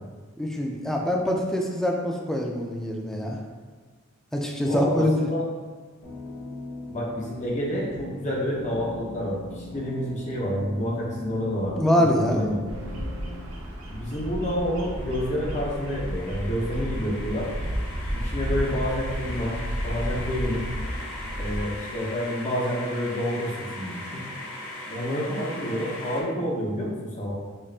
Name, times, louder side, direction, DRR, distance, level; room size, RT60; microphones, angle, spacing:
voice 1, 0.4-3.4 4.3-5.3 11.8-12.4, left 1 dB, ahead, 0 dB, 0.3 m, -24 dB
voice 2, 4.6-5.0 5.3-5.4 6.9-12.6 13.0-13.1 13.9-17.5 18.1-19.5 19.8-20.6 21.4-24.2 24.9-27.3, equal, 35° left, -4 dB, 0.7 m, -29 dB
sound 1, 6.0-13.4, left 2 dB, 65° left, 1.0 m, -39 dB
Bird vocalization bird call bird song, 12.7-21.7, equal, 90° right, 0.7 m, -32 dB
sound 2, 14.9-26.2, left 1 dB, 85° left, 0.6 m, -39 dB
5.2 x 2.5 x 2.4 m, 1.4 s
head